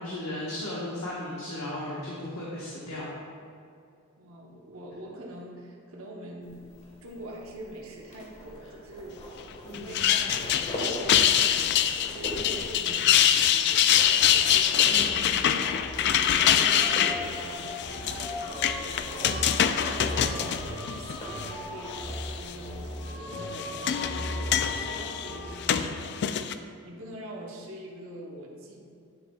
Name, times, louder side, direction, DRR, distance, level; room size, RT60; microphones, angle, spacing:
voice 1, 0.0-3.1 9.6-10.0 14.9-15.3, left 1 dB, 90° left, -7 dB, 1.3 m, -36 dB
voice 2, 4.2-6.6 7.0-9.2 9.7-11.7 12.1-14.9 15.8-19.4 19.8-28.8, right 1 dB, 75° right, -1 dB, 0.9 m, -44 dB
sound 1, 6.4-23.2, equal, 35° left, 1.5 m, -43 dB
sound 2, 9.7-21.5 21.9-22.5 23.3-26.5, left 9 dB, 55° left, 0.3 m, -25 dB
sound 3, 14.2-26.0, equal, 10° left, 0.9 m, -38 dB
9.5 x 7.1 x 2.3 m, 2.4 s
head